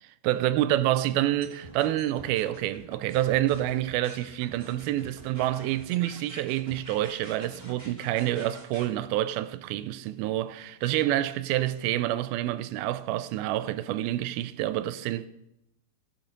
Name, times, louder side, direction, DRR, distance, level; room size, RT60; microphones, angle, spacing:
voice 1, 0.2-15.3, right 14 dB, 85° right, 2.4 m, -28 dB
sound 1, 1.4-8.9, right 1 dB, 10° right, 1.2 m, -47 dB
15.5 x 6.4 x 5.2 m
omnidirectional pair, 4.4 m